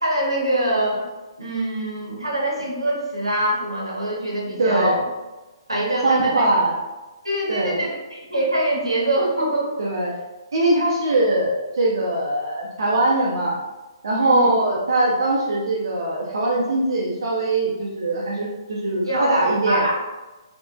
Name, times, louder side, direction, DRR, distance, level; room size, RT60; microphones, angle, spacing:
voice 1, 0.0-1.1 1.4-5.0 5.7-6.5 7.2-9.7 14.2-14.5 19.0-19.3 19.7-19.9, right 1 dB, 85° right, -3 dB, 0.8 m, -24 dB
voice 2, 4.6-5.0 6.0-6.8 7.5-7.8 9.8-10.1 10.5-13.6 14.0-19.9, right 2 dB, 60° right, -3 dB, 0.4 m, -21 dB
2.9 x 2.1 x 2.4 m, 1.1 s
figure-of-eight pair, 130°, 3 cm